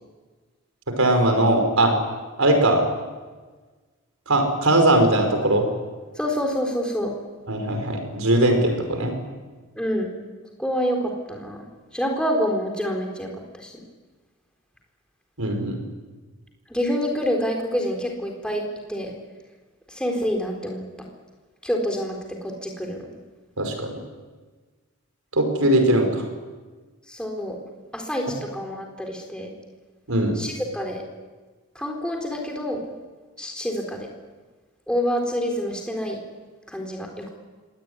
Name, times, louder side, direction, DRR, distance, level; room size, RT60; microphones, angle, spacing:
voice 1, 1.0-1.9 2.4-2.8 4.3-5.7 7.5-9.2 15.4-15.8 23.6-23.9 25.3-26.2 30.1-30.4, right 1 dB, 80° right, 5 dB, 5.4 m, -20 dB
voice 2, 6.2-7.1 9.8-10.1 10.6-11.6 11.9-13.3 13.5-13.7 16.7-18.6 18.9-19.1 19.9-20.8 21.6-22.2 22.4-23.1 27.1-27.6 27.9-29.5 30.4-31.0 31.8-32.8 33.4-34.1 34.9-36.2 36.7-37.3, equal, 5° left, 1 dB, 4.0 m, -27 dB
25.0 x 18.5 x 9.7 m, 1.4 s
head